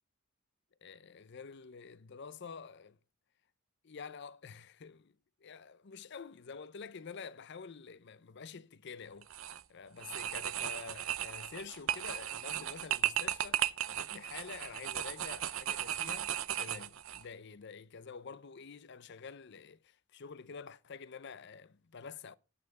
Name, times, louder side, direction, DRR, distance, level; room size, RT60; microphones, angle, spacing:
voice 1, 0.8-3.0 3.8-5.2 5.4-9.3 9.7-16.3 16.6-22.4, left 5 dB, 55° left, 0.6 m, -48 dB
sound 1, 9.2-9.6 10.0-17.2, right 11 dB, 70° right, 0.6 m, -36 dB
8.8 x 8.6 x 4.8 m
head